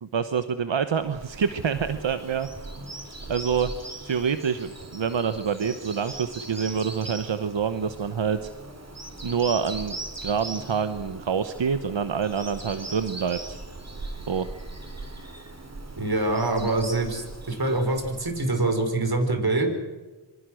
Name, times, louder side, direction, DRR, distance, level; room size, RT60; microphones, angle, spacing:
voice 1, 0.0-2.5 3.3-3.7 4.0-8.5 9.2-13.6 14.3-14.5, right 6 dB, 90° right, 11 dB, 1.0 m, -27 dB
Bird vocalization bird call bird song, 0.9-18.9, right 2 dB, 35° right, 3.7 m, -40 dB
voice 2, 16.0-19.7, right 2 dB, 55° right, 5 dB, 5.0 m, -25 dB
27.0 x 24.5 x 6.4 m, 1.2 s
wide cardioid pair, 60°, 44 cm